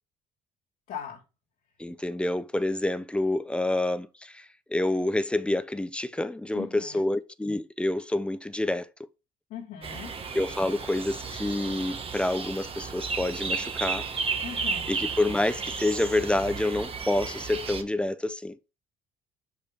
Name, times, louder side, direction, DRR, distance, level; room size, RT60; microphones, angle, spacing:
voice 1, 0.9-1.2 6.5-7.0 9.5-10.1 14.4-14.9, left 8 dB, 75° left, 2.1 m, -39 dB
voice 2, 1.8-8.9 10.3-14.1 14.9-18.6, left 1 dB, 5° left, 0.5 m, -28 dB
sound 1, 9.8-17.8, right 5 dB, 35° right, 1.2 m, -33 dB
6.6 x 5.0 x 3.5 m
cardioid pair, 110°, 17 cm